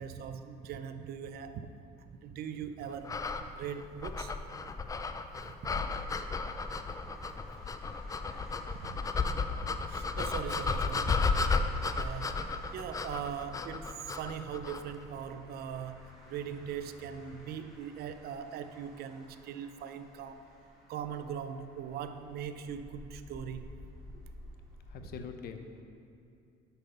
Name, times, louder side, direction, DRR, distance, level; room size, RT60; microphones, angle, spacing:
voice 1, 0.0-1.7 2.0-3.2 3.6-4.3 5.4-5.8 7.2-7.3 8.7-11.6 12.0-12.4 12.7-20.4 20.9-23.7, right 8 dB, 65° right, 10 dB, 0.5 m, -41 dB
sound 1, 3.0-14.9, left 4 dB, 20° left, 0.4 m, -34 dB
sound 2, 5.8-25.2, left 1 dB, ahead, 2.0 m, -54 dB
voice 2, 24.9-25.8, left 7 dB, 65° left, 6 dB, 0.7 m, -44 dB
7.9 x 5.4 x 5.6 m, 2.6 s
cardioid pair, 110°, 17 cm